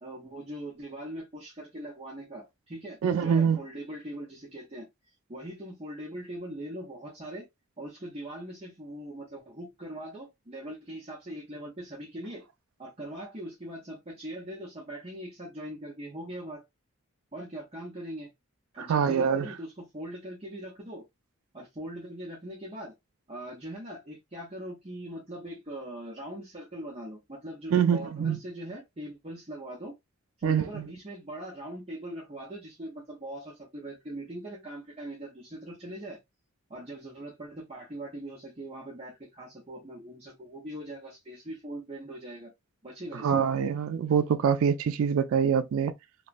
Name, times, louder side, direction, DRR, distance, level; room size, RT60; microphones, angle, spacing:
voice 1, 0.0-4.9 5.3-7.5 7.8-12.5 12.8-16.6 17.3-18.3 18.7-21.1 21.5-22.9 23.3-29.9 30.4-36.2 36.7-42.5 42.8-43.4, right 1 dB, 30° right, 0.8 m, -41 dB
voice 2, 3.0-3.6 18.8-19.5 27.7-28.4 30.4-30.9 43.2-45.9, right 7 dB, 75° right, 0.3 m, -25 dB
3.0 x 2.2 x 2.5 m
head